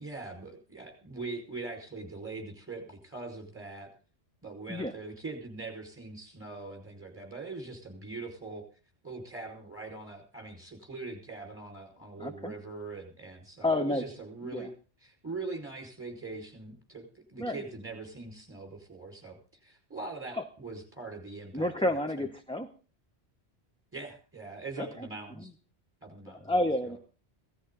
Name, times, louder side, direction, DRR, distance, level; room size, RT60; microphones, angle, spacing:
voice 1, 0.0-3.9 4.4-8.6 9.0-14.7 15.0-19.4 19.6-22.3 23.9-25.5 26.0-26.6 26.8-27.0, right 3 dB, 10° right, 2 dB, 5.1 m, -42 dB
voice 2, 12.2-12.5 13.6-14.0 14.4-14.7 17.4-17.6 21.5-22.7 24.8-25.1 26.3-27.0, left 1 dB, 5° left, 5 dB, 0.8 m, -30 dB
17.5 x 13.5 x 3.9 m, 0.38 s
omnidirectional pair, 1.1 m